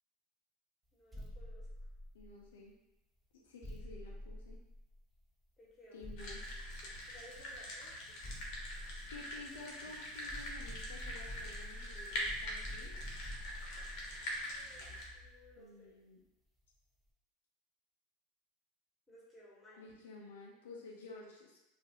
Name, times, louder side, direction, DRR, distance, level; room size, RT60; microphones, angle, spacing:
voice 1, 0.9-1.9 5.6-6.1 7.1-7.9 14.4-16.0 19.1-19.8, left 1 dB, 15° left, -6 dB, 1.2 m, -59 dB
sound 1, 1.1-2.6 3.6-5.2 6.0-7.4 8.2-9.8 10.3-15.5, equal, 10° right, 0.6 m, -48 dB
voice 2, 2.1-2.8 3.3-4.6 5.9-6.4 9.1-13.0 15.6-16.2 19.8-21.6, left 3 dB, 80° left, 0 dB, 0.4 m, -52 dB
sound 2, 6.2-15.0, equal, 55° left, 0.7 m, -44 dB
2.4 x 2.4 x 2.8 m, 0.92 s
hypercardioid pair, 95°, 0 cm